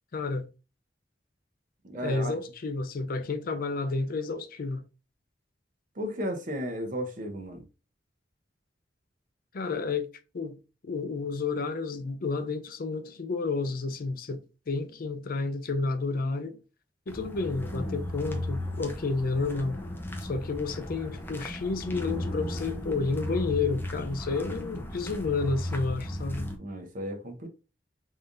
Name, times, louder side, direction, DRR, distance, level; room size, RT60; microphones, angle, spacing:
voice 1, 0.1-0.5 2.0-4.8 9.5-10.1 10.3-10.6 10.8-16.6 17.1-19.8 20.2-26.5, left 3 dB, 55° left, 0.5 m, -31 dB
voice 2, 1.8-2.4 6.0-7.6 26.6-27.5, equal, 45° right, 0.9 m, -34 dB
sound 1, 17.1-26.6, left 1 dB, 10° left, 0.7 m, -35 dB
3.7 x 3.4 x 2.5 m
head